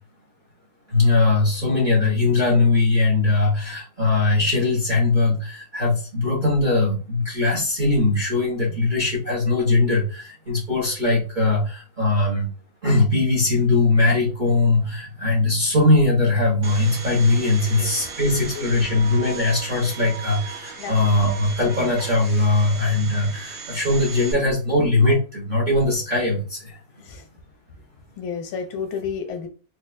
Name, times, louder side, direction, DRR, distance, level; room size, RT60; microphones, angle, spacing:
voice 1, 0.9-12.5 12.8-26.8, left 2 dB, 35° right, 0.8 m, -20 dB
Domestic sounds home sounds, 16.6-24.3, right 5 dB, 75° right, 0.6 m, -37 dB
voice 2, 17.6-18.2 18.5-19.1 20.8-21.0 27.0-27.3 28.2-29.5, left 6 dB, 85° left, 1.5 m, -32 dB
4.3 x 2.4 x 2.5 m
omnidirectional pair, 2.1 m